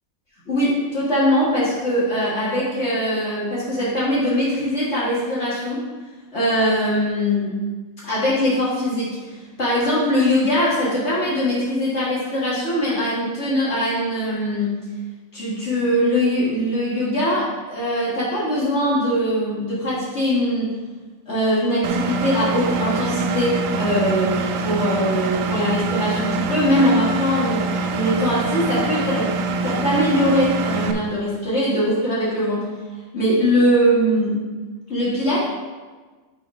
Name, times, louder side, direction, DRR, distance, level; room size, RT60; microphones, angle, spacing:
voice 1, 0.5-5.8 6.3-7.5 8.0-9.1 9.6-14.7 15.3-20.7 21.3-29.3 29.6-32.7 33.1-34.4 34.9-35.5, equal, 55° left, -8 dB, 1.9 m, -21 dB
Engine, 21.8-30.9, right 3 dB, 75° right, 1.0 m, -24 dB
6.9 x 4.1 x 4.8 m, 1.3 s
omnidirectional pair, 1.5 m